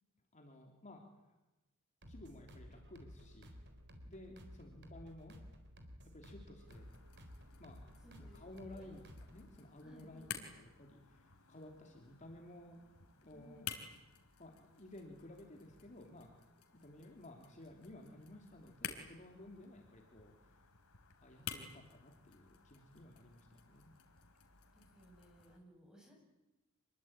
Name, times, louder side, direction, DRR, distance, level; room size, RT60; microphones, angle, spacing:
voice 1, 0.3-1.4 2.1-3.5 4.1-5.4 6.1-6.9 7.6-7.8 8.2-9.0 9.3-10.3 10.5-13.7 14.4-16.4 16.8-20.7 21.2-23.9, left 1 dB, 35° left, 2 dB, 3.2 m, -55 dB
sound 1, 2.0-9.5, equal, 50° right, 4.0 m, -55 dB
voice 2, 4.3-4.8 8.0-9.0 9.8-10.5 13.3-13.8 24.7-26.1, right 1 dB, 5° right, 1 dB, 7.7 m, -61 dB
sound 2, 6.7-25.6, left 7 dB, 85° left, 3.5 m, -53 dB
26.5 x 22.0 x 9.0 m, 1.0 s
head